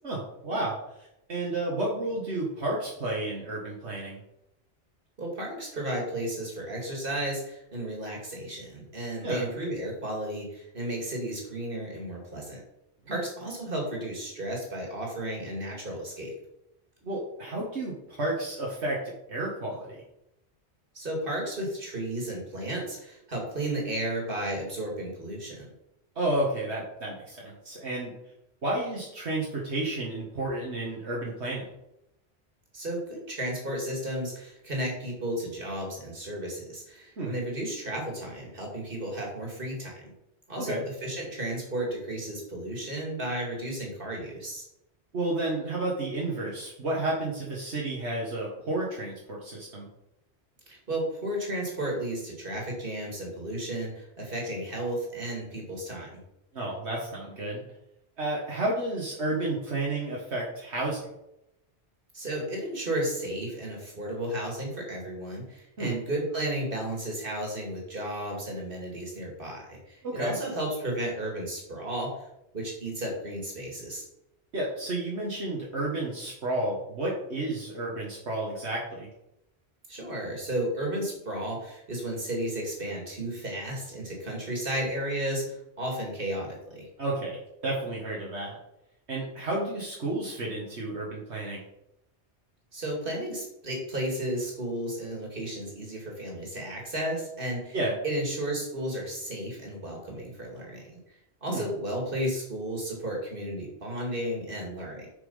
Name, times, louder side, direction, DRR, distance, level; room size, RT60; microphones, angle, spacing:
voice 1, 0.0-4.2 9.2-9.4 13.1-13.2 17.0-20.0 26.2-28.1 28.6-31.6 37.2-37.4 40.6-40.8 45.1-49.9 56.5-57.6 58.2-61.1 65.8-65.9 70.0-70.4 74.5-79.1 87.0-88.6 89.1-91.6 97.7-97.9 101.5-101.7, right 2 dB, 75° right, -4 dB, 1.9 m, -31 dB
voice 2, 5.2-12.6 13.1-16.3 20.9-25.7 32.7-40.1 40.5-44.6 50.7-56.2 62.1-72.3 72.5-74.0 79.9-86.9 92.7-97.8 98.0-100.8 101.4-105.1, right 1 dB, 50° right, -1 dB, 2.7 m, -33 dB
7.0 x 5.8 x 5.5 m, 0.85 s
omnidirectional pair, 1.1 m